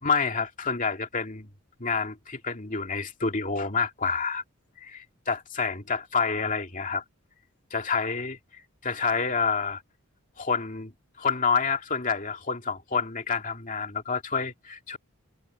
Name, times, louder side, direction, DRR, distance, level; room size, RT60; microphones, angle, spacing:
voice 1, 0.0-1.5 1.8-4.4 4.8-7.0 7.7-9.8 10.4-10.9 11.2-15.0, left 5 dB, 40° left, 2.3 m, -28 dB
head